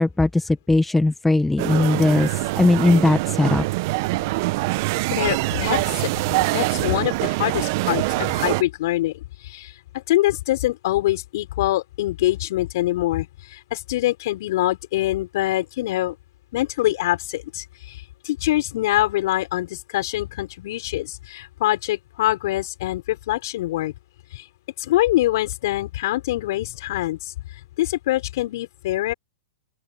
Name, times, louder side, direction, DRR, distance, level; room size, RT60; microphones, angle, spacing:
voice 1, 0.0-2.3 2.6-3.6, left 2 dB, 5° left, 1.4 m, -18 dB
sound 1, 1.6-8.6, right 22 dB, 50° right, 1.2 m, -24 dB
voice 2, 5.1-6.1 6.5-16.2 16.5-23.9 24.3-24.5 24.8-29.1, left 16 dB, 60° left, 6.1 m, -24 dB
open air
hypercardioid pair, 120°, 2 cm